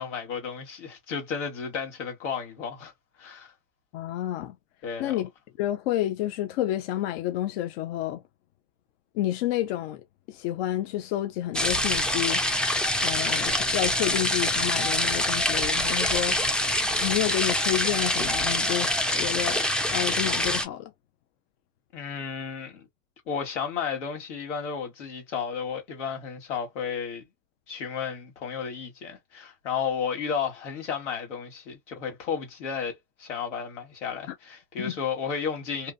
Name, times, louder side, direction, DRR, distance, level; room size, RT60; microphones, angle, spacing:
voice 1, 0.0-2.9 3.2-3.5 4.8-5.2 21.9-22.9 23.3-27.2 27.7-35.9, left 6 dB, 85° left, 1.5 m, -33 dB
voice 2, 3.9-4.5 5.0-5.3 5.6-8.2 9.2-10.0 10.3-12.4 13.0-16.4 17.0-19.6 19.9-20.9 34.3-34.4 34.8-34.9, left 13 dB, 55° left, 0.5 m, -29 dB
sound 1, 11.5-20.6, left 1 dB, 5° left, 0.3 m, -25 dB
2.7 x 2.4 x 2.2 m
hypercardioid pair, 105°, 35 cm